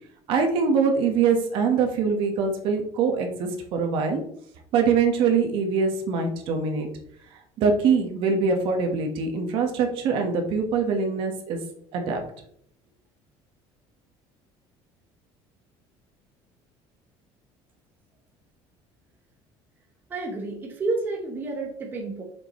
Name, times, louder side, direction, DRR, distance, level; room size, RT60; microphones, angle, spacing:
voice 1, 0.3-4.2 4.7-6.9 7.6-11.6 11.9-12.2, right 5 dB, 55° right, 4 dB, 1.2 m, -23 dB
voice 2, 20.1-22.2, right 2 dB, 20° right, 1 dB, 0.9 m, -30 dB
6.8 x 5.2 x 3.0 m, 0.67 s
cardioid pair, 175°, 11 cm